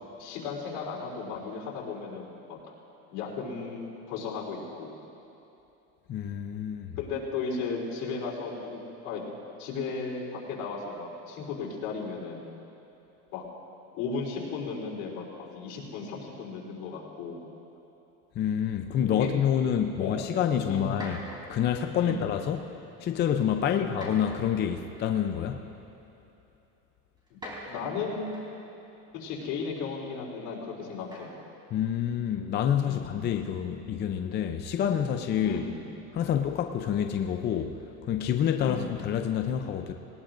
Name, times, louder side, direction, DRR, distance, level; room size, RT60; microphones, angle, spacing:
voice 1, 0.2-2.6 3.1-5.0 7.0-9.2 9.6-12.5 13.3-13.4 13.9-17.4 19.1-19.3 20.0-20.2 20.7-20.9 22.0-22.2 23.6-23.9 27.7-28.5 29.1-31.3 32.8-33.1 35.4-35.9 38.6-38.9, left 5 dB, 80° left, -3 dB, 3.7 m, -35 dB
voice 2, 6.1-6.9 18.4-21.2 21.5-22.6 23.0-25.6 31.7-35.6 36.1-37.7 38.1-39.9, left 9 dB, 30° left, 5 dB, 0.5 m, -27 dB
Chair Falling, 20.9-21.7 22.6-22.9 23.9-24.6 25.8-25.9 27.2-28.7 31.0-31.5, equal, 15° right, 3.6 m, -43 dB
19.5 x 19.0 x 2.6 m, 3.0 s
cardioid pair, 145°, 34 cm